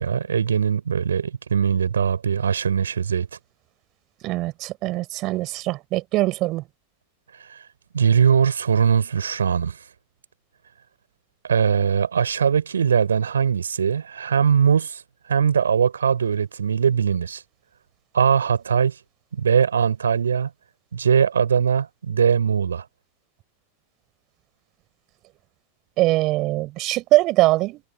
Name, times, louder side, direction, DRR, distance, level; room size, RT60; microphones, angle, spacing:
voice 1, 0.0-3.3 7.5-7.6 7.9-9.8 11.4-15.0 15.3-17.4 18.1-19.0 19.4-20.5 20.9-22.8, right 7 dB, 70° right, 6.8 m, -21 dB
voice 2, 4.2-6.6 26.0-27.8, right 19 dB, 40° right, 5.5 m, -22 dB
figure-of-eight pair, 90°, 0 cm